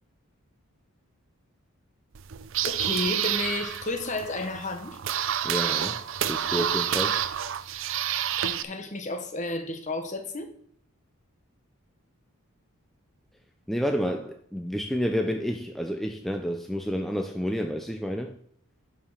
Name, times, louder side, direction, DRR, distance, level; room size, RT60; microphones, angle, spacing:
sound 1, 2.1-8.6, right 10 dB, 60° right, 0.5 m, -29 dB
voice 1, 2.6-5.0 8.4-10.5, left 2 dB, 35° left, 1.0 m, -32 dB
voice 2, 5.4-6.0 6.3-7.2 13.7-18.4, equal, ahead, 0.4 m, -29 dB
11.0 x 5.0 x 5.6 m
head